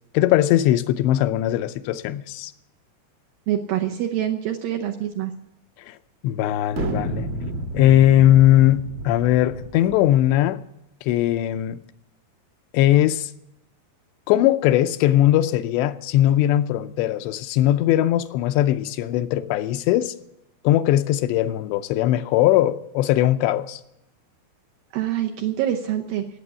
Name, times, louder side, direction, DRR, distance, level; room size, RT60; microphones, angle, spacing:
voice 1, 0.1-2.5 5.9-6.0 6.2-7.3 7.7-10.6 11.0-11.8 12.7-13.3 14.3-20.1 20.6-23.8, left 13 dB, 90° left, 2.9 m, -19 dB
voice 2, 3.5-5.3 24.9-26.3, right 11 dB, 75° right, 2.1 m, -25 dB
sound 1, 6.7-10.3, right 1 dB, 60° right, 1.7 m, -30 dB
17.0 x 8.1 x 8.0 m
omnidirectional pair, 4.9 m